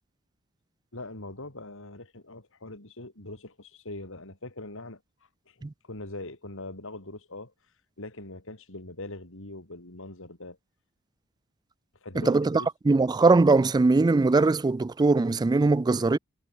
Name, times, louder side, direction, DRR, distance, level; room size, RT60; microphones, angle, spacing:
voice 1, 0.9-5.0 5.5-7.5 8.0-10.6 12.0-12.7, left 2 dB, 65° left, 4.4 m, -42 dB
voice 2, 12.2-16.2, right 3 dB, 20° right, 0.3 m, -21 dB
head